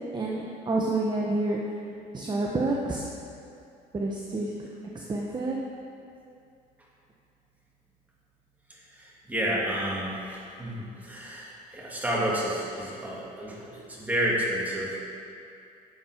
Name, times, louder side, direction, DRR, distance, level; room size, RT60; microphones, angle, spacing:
voice 1, 0.1-1.6 2.1-3.0 3.9-4.5 4.9-5.6, right 2 dB, 25° right, -2 dB, 1.1 m, -28 dB
voice 2, 8.9-15.0, right 1 dB, 10° right, -5 dB, 2.5 m, -30 dB
11.5 x 7.4 x 4.5 m, 2.5 s
cardioid pair, 110°, 17 cm